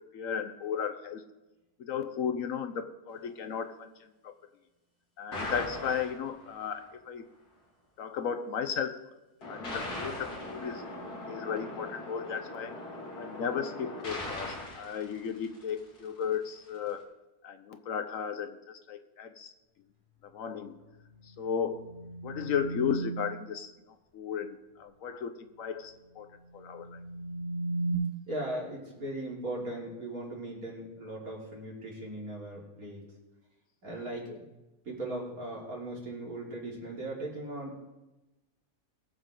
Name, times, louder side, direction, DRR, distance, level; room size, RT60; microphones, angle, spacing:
voice 1, 0.1-1.2 1.8-3.9 4.2-4.3 5.2-7.3 8.0-9.0 9.5-12.7 13.2-17.1 17.4-19.5 20.3-20.8 21.4-21.8 22.2-23.7 24.1-26.3 26.5-27.0, left 7 dB, 65° left, 9 dB, 1.0 m, -35 dB
sound 1, 5.3-6.7 9.4-16.0, left 2 dB, 85° left, 2.9 m, -40 dB
sound 2, 21.1-23.4 26.4-27.9, right 2 dB, 10° left, 3.0 m, -36 dB
voice 2, 28.3-33.0 33.8-34.4 34.9-37.8, right 1 dB, 65° right, -3 dB, 3.5 m, -38 dB
21.0 x 7.5 x 3.7 m, 1.0 s
omnidirectional pair, 1.6 m